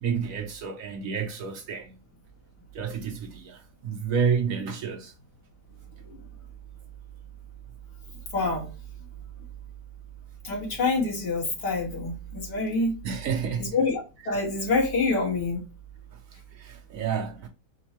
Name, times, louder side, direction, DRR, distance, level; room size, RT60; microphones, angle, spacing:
voice 1, 0.0-2.0 2.7-5.1 13.0-13.7 16.5-17.5, right 6 dB, 65° right, 0.9 m, -30 dB
voice 2, 8.3-8.7 10.4-12.9 13.6-14.0 14.3-15.6, left 3 dB, 90° left, 2.2 m, -26 dB
4.4 x 2.1 x 2.8 m
omnidirectional pair, 1.8 m